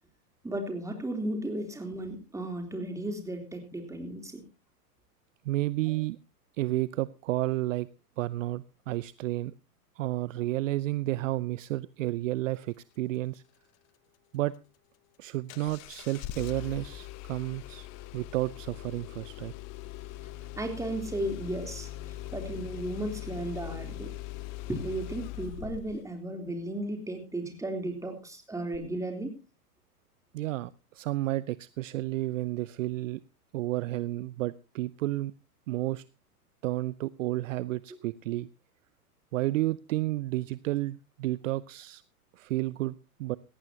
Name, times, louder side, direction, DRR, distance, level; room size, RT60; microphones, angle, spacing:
voice 1, 0.4-4.4 20.6-24.1 24.7-29.4, right 1 dB, 5° right, 4 dB, 3.3 m, -35 dB
voice 2, 5.4-6.2 6.6-7.9 8.2-9.5 10.0-13.4 14.3-14.5 15.2-17.9 18.1-19.5 30.3-33.2 33.5-35.3 35.7-36.0 36.6-38.5 39.3-42.0 42.3-43.4, right 17 dB, 55° right, 19 dB, 0.6 m, -31 dB
Engine starting, 15.5-26.1 28.7-28.8, left 14 dB, 35° left, 0.9 m, -41 dB
17.5 x 14.5 x 2.8 m, 0.29 s
hypercardioid pair, 100°, 46 cm